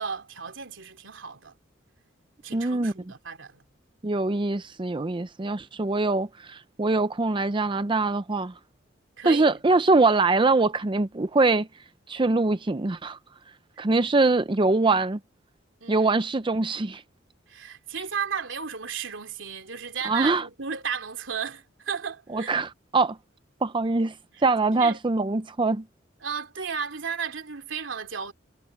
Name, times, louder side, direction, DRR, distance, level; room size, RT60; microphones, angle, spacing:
voice 1, 0.0-1.5 2.4-3.6 9.2-9.6 15.8-16.1 17.5-22.5 24.3-24.4 24.8-25.0 26.2-28.3, right 6 dB, 85° right, 2.9 m, -34 dB
voice 2, 2.5-2.9 4.0-8.5 9.2-11.7 12.1-13.2 13.8-15.2 15.9-17.0 20.0-20.4 22.3-23.2 23.6-24.1 24.4-25.8, right 3 dB, 25° right, 0.5 m, -23 dB
head